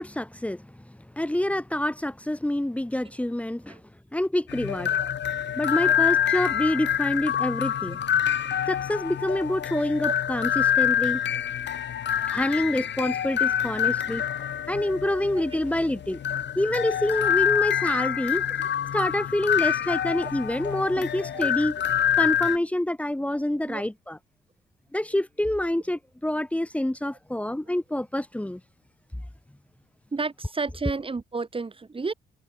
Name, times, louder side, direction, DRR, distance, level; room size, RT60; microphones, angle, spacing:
voice 1, 0.0-3.8 4.1-5.0 5.6-8.0 8.7-11.2 12.3-16.2 16.5-18.4 18.9-21.8 22.2-24.2 24.9-28.6, left 1 dB, 5° left, 4.8 m, -27 dB
sound 1, 4.5-22.6, left 9 dB, 65° left, 5.9 m, -26 dB
voice 2, 30.1-32.1, right 4 dB, 25° right, 6.2 m, -32 dB
cardioid pair, 90°, 20 cm